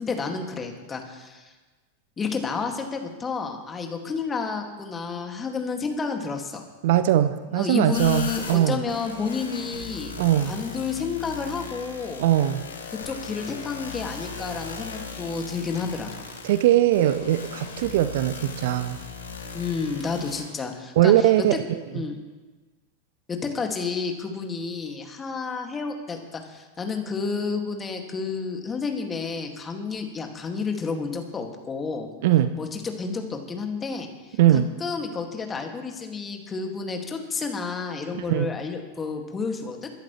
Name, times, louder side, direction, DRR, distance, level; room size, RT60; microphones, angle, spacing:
voice 1, 0.0-1.5 2.2-6.6 7.5-10.1 10.4-12.2 13.0-16.1 19.5-21.3 21.9-22.2 23.3-32.1 32.6-39.9, left 5 dB, 20° left, 3 dB, 2.1 m, -30 dB
voice 2, 6.8-8.8 10.2-10.5 12.2-12.6 16.4-19.0 21.0-21.8 32.2-32.6 34.4-34.7 38.1-38.5, right 12 dB, 50° right, 13 dB, 0.6 m, -21 dB
sound 1, 7.9-20.4, left 5 dB, 70° left, 2.2 m, -38 dB
23.0 x 11.5 x 3.2 m, 1.3 s
figure-of-eight pair, 90°, 0 cm